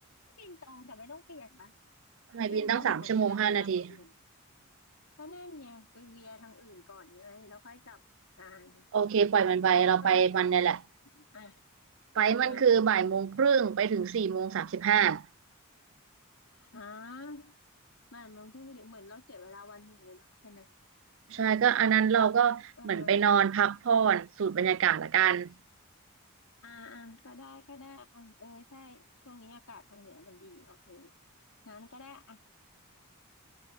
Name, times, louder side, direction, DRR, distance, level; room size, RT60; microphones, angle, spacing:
voice 1, 0.3-1.7 2.5-4.1 5.2-8.0 8.4-8.9 9.5-10.3 11.1-11.6 12.1-12.9 16.5-17.5 18.1-20.7 21.4-22.0 22.8-23.3 26.6-31.1 31.6-32.4, left 3 dB, 70° left, 4.0 m, -49 dB
voice 2, 2.3-3.9 8.9-10.8 12.2-15.2 21.3-25.5, right 7 dB, 60° right, 0.4 m, -25 dB
head